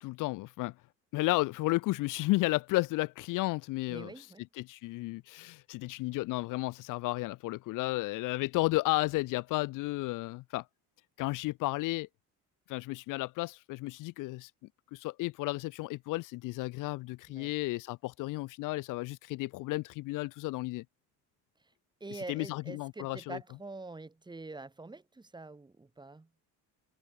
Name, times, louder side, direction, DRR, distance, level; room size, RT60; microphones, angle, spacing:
voice 1, 0.0-0.7 1.1-4.3 4.5-10.6 11.2-12.1 12.7-14.5 14.9-20.8 22.1-23.4, left 20 dB, 70° left, 0.5 m, -33 dB
voice 2, 3.9-4.4 17.3-17.5 22.0-26.3, right 3 dB, 15° right, 5.5 m, -45 dB
cardioid pair, 140°, 33 cm